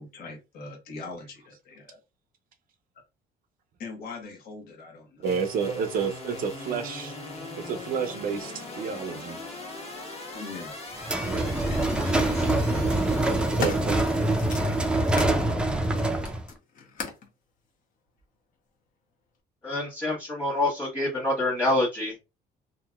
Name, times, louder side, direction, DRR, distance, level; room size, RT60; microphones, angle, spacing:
voice 1, 0.0-2.0 3.8-5.3 10.3-10.8 11.7-13.3, left 3 dB, 70° left, 1.2 m, -42 dB
sound 1, 5.2-15.5, left 2 dB, 35° left, 1.2 m, -41 dB
voice 2, 5.2-7.2 7.6-9.4 11.2-11.5 13.6-14.0, right 6 dB, 55° right, 0.5 m, -30 dB
sound 2, 11.0-11.1 12.2-12.5 13.1-15.4 15.8-17.3 18.2-18.3, left 5 dB, 55° left, 0.9 m, -37 dB
sound 3, 11.0-16.5, right 1 dB, 5° right, 0.4 m, -25 dB
voice 3, 19.6-22.3, left 1 dB, 15° left, 1.3 m, -26 dB
2.8 x 2.6 x 2.2 m
cardioid pair, 110°, 17 cm